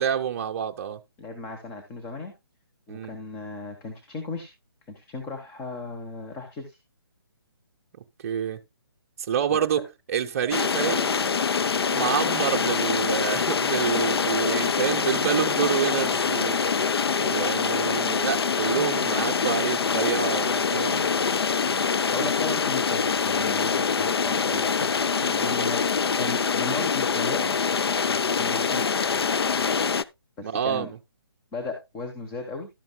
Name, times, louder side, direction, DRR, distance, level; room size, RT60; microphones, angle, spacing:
voice 1, 0.0-1.0 2.9-3.1 8.2-8.6 9.3-11.2 11.8-16.6 17.1-21.1 21.6-22.1 25.2-25.4 30.4-30.9, right 8 dB, 35° right, 0.6 m, -28 dB
voice 2, 1.2-2.3 2.9-4.5 4.9-6.8 9.5-9.8 22.1-24.9 25.4-25.9 26.1-27.5 28.3-28.9 30.4-30.9 31.5-32.7, left 3 dB, 15° left, 1.1 m, -36 dB
sound 1, 10.5-30.0, left 6 dB, 80° left, 0.5 m, -24 dB
12.0 x 10.5 x 2.2 m
hypercardioid pair, 150°, 13 cm